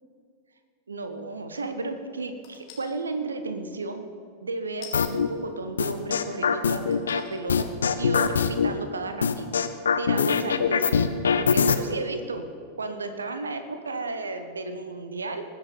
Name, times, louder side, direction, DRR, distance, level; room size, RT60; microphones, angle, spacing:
voice 1, 0.9-4.1 4.4-7.7 8.0-9.5 10.0-10.9 11.4-12.4 12.8-15.4, right 3 dB, 75° right, 8 dB, 1.1 m, -33 dB
sound 1, 2.4-2.9 4.8-5.1 6.0-6.1 6.9-7.4 7.9-8.0, left 7 dB, 45° left, 2.4 m, -44 dB
sound 2, 4.9-5.3 5.8-7.2 7.5-8.7 9.2-11.8, left 6 dB, 70° left, 0.7 m, -22 dB
20.0 x 7.7 x 5.2 m, 2.3 s
figure-of-eight pair, 90°, 0 cm